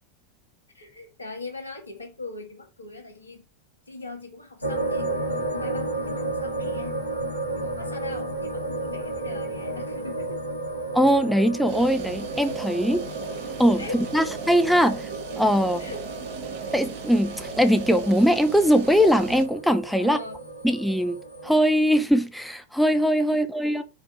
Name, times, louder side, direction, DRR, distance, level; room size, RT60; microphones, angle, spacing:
voice 1, 0.7-3.4 3.9-7.0 7.5-10.4 13.8-14.2 15.8-16.0 20.0-20.4 23.3-23.8, left 3 dB, 75° left, 1.7 m, -40 dB
sound 1, 4.6-21.6, right 2 dB, 90° right, 1.5 m, -33 dB
voice 2, 10.9-13.0 13.6-15.1 15.4-15.8 16.7-20.2 20.6-21.2 21.4-23.8, equal, ahead, 0.5 m, -21 dB
sound 2, 11.7-19.5, right 6 dB, 50° right, 1.2 m, -37 dB
4.7 x 4.4 x 4.7 m
figure-of-eight pair, 90°, 0 cm